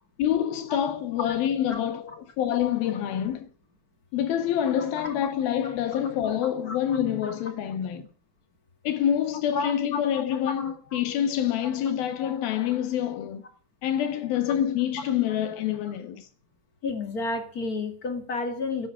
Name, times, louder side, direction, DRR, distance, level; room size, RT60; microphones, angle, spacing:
voice 1, 0.2-3.5 4.1-8.1 8.8-13.4 13.8-16.3, left 10 dB, 85° left, 3.4 m, -27 dB
voice 2, 9.5-10.2 10.9-11.0 16.8-18.9, left 3 dB, 30° left, 1.9 m, -31 dB
13.5 x 10.5 x 6.3 m
omnidirectional pair, 4.2 m